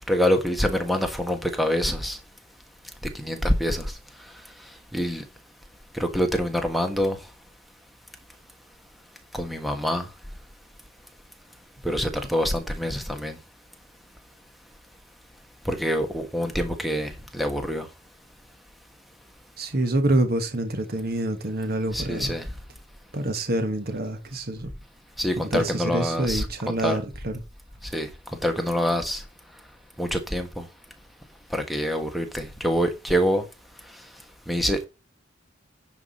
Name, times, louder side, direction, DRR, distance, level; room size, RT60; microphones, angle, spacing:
voice 1, 0.1-2.2 3.2-3.8 4.9-5.2 5.9-7.2 9.3-10.1 11.8-13.4 15.6-17.9 21.9-22.4 25.2-27.0 27.9-28.1 28.4-29.2 30.0-30.6 31.5-33.4 34.5-34.9, equal, ahead, 1.4 m, -25 dB
voice 2, 19.6-22.3 23.1-24.7 25.4-27.3, right 1 dB, 50° right, 1.4 m, -26 dB
10.0 x 4.8 x 5.3 m
head